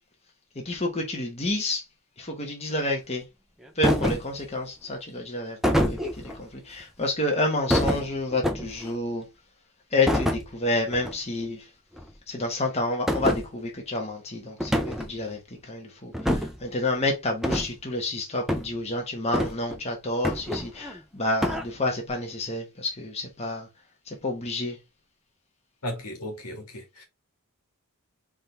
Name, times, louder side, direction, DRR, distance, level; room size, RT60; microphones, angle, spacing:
voice 1, 0.6-1.8 2.2-3.2 3.8-5.6 5.9-9.2 9.9-11.6 12.3-23.7 24.1-24.8, left 2 dB, 30° left, 1.2 m, -29 dB
sound 1, 3.8-4.4 5.6-6.4 7.7-8.9 10.1-10.5 10.9-11.1 11.4-11.5 12.0-12.1 13.1-13.4 14.6-15.1 16.1-16.6 17.4-17.7 18.5-18.7 19.3-19.8 20.2-21.0 21.4-21.6, equal, ahead, 0.6 m, -26 dB
voice 2, 25.8-27.0, equal, 90° left, 1.9 m, -35 dB
4.2 x 3.7 x 3.4 m
head